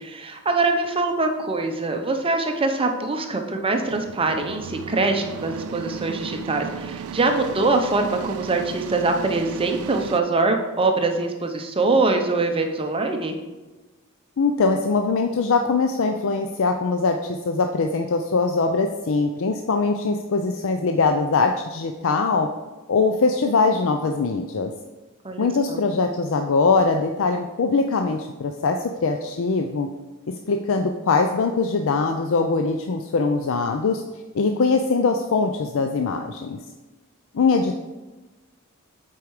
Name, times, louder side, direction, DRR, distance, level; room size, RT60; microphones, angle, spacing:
voice 1, 0.0-13.4 25.2-25.8, right 3 dB, 25° right, 4 dB, 0.7 m, -23 dB
sound 1, 3.8-10.2, right 7 dB, 85° right, 0.4 m, -35 dB
voice 2, 14.4-22.5 22.9-24.7 25.4-29.9 30.5-34.0 34.3-36.6 37.3-37.8, left 4 dB, 65° left, 5 dB, 0.5 m, -22 dB
8.3 x 4.6 x 4.8 m, 1.2 s
head